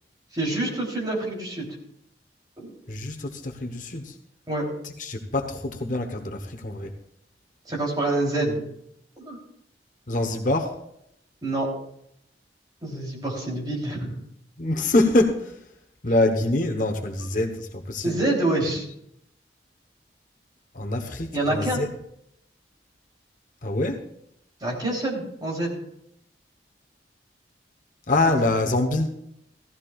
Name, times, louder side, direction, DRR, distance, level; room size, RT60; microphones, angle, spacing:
voice 1, 0.3-1.7 2.6-2.7 4.5-4.6 7.6-8.6 9.2-9.4 11.4-11.7 12.8-14.1 18.0-18.8 21.3-21.8 24.6-25.7, right 2 dB, 25° right, -3 dB, 3.4 m, -26 dB
voice 2, 2.9-4.1 5.0-6.9 10.1-10.7 14.6-15.5 16.0-18.1 20.7-21.9 23.6-24.0 28.1-29.1, left 2 dB, 45° left, 3 dB, 1.0 m, -25 dB
16.5 x 14.0 x 2.4 m, 0.75 s
head